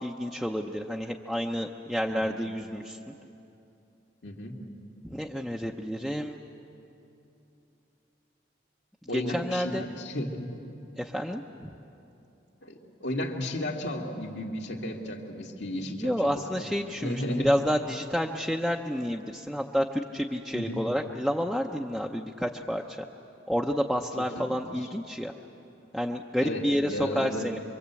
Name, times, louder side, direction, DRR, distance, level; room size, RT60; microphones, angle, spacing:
voice 1, 0.0-3.1 5.0-6.4 9.1-9.8 11.0-11.7 15.7-23.0 23.5-25.3 25.9-27.6, equal, ahead, 0 dB, 0.7 m, -30 dB
voice 2, 4.2-4.6 9.1-10.6 12.6-16.1 16.5-16.7 17.0-17.6 20.5-20.8 24.2-24.3 26.4-27.5, left 1 dB, 70° left, 0 dB, 2.5 m, -34 dB
26.0 x 24.0 x 8.3 m, 2.9 s
head